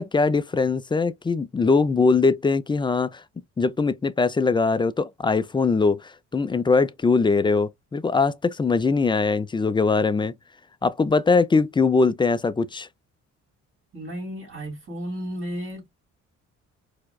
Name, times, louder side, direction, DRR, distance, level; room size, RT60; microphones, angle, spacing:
voice 1, 0.0-3.2 3.6-10.3 10.8-12.9, left 4 dB, 15° left, 0.3 m, -21 dB
voice 2, 13.9-15.9, equal, 45° right, 2.3 m, -33 dB
4.5 x 2.1 x 2.2 m
cardioid pair, 90°, 30 cm